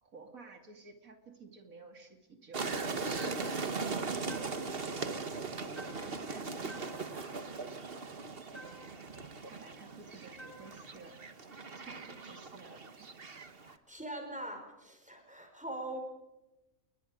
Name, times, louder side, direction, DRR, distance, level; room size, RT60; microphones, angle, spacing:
voice 1, 0.0-3.2 6.0-7.4 9.4-11.2 11.8-13.1, right 4 dB, 80° right, 4 dB, 3.0 m, -53 dB
sound 1, 2.5-13.7, right 4 dB, 45° right, 1.6 m, -39 dB
sound 2, 3.2-3.7 4.3-4.8 5.8-6.3 6.7-7.2 8.5-9.1 10.4-10.9, right 1 dB, 30° left, 7.9 m, -52 dB
voice 2, 13.6-16.0, right 1 dB, 5° right, 4 dB, 5.3 m, -42 dB
29.5 x 22.0 x 5.1 m, 0.97 s
omnidirectional pair, 1.4 m